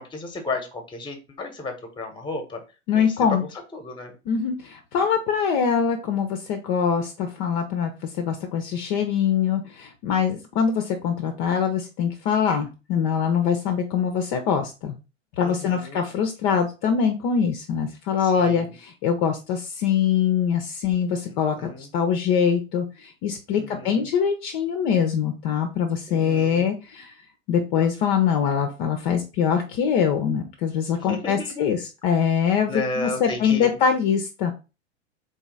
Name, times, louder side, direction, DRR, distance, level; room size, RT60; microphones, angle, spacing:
voice 1, 0.0-2.6 2.9-3.1 3.7-4.1 15.4-16.1 18.2-18.7 21.3-21.9 23.5-24.1 26.1-26.7 30.9-31.7 32.7-33.7, left 3 dB, 10° left, 6 dB, 1.0 m, -33 dB
voice 2, 2.9-3.4 4.3-7.9 8.2-14.9 15.4-27.1 27.5-34.5, left 7 dB, 40° left, 5 dB, 0.6 m, -23 dB
4.0 x 3.0 x 3.8 m, 0.30 s
figure-of-eight pair, 90°, 38 cm